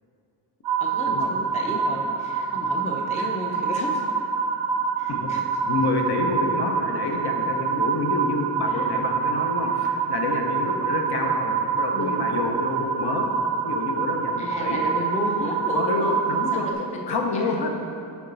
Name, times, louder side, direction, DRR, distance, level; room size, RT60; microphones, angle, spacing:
sound 1, 0.6-16.7, right 6 dB, 60° right, 0.6 m, -26 dB
voice 1, 0.8-4.0 5.0-5.4 8.7-8.9 11.9-12.2 14.4-16.2 16.5-17.6, left 1 dB, 15° left, 0 dB, 0.5 m, -33 dB
voice 2, 5.7-13.3 13.6-14.8 15.4-16.7 17.1-17.7, left 3 dB, 55° left, 2 dB, 0.8 m, -28 dB
7.1 x 4.7 x 3.9 m, 2.7 s
wide cardioid pair, 140°, 45 cm